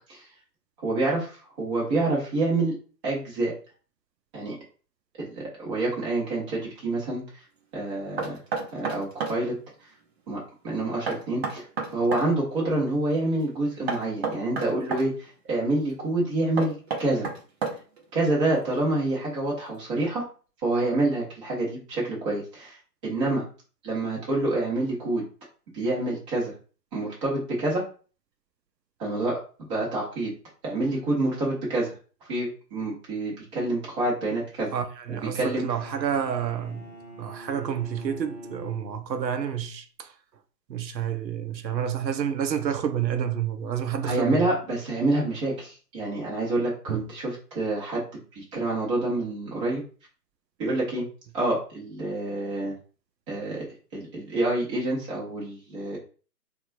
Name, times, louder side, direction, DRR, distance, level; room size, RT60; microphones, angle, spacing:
voice 1, 0.8-2.7 3.0-3.5 4.3-4.6 5.2-7.2 7.7-8.4 8.7-9.5 10.3-11.7 11.9-17.3 18.1-20.2 20.6-22.8 23.0-23.4 23.8-25.2 25.7-26.5 26.9-27.8 29.0-29.4 29.7-30.3 30.6-31.9 32.3-34.7 35.1-35.6 44.0-49.8 50.6-51.0 51.3-52.7 53.3-53.7 53.9-56.0, right 2 dB, 20° right, 1.0 m, -27 dB
Knock, 8.2-9.4 11.1-12.3 13.9-15.1 16.6-18.0, right 4 dB, 40° right, 0.7 m, -30 dB
voice 2, 34.7-36.9 37.2-40.1 40.7-44.5 46.9-47.0, right 8 dB, 90° right, 0.6 m, -29 dB
Bowed string instrument, 35.3-39.4, equal, 30° left, 0.4 m, -45 dB
4.2 x 2.3 x 2.6 m
figure-of-eight pair, 135°, 49 cm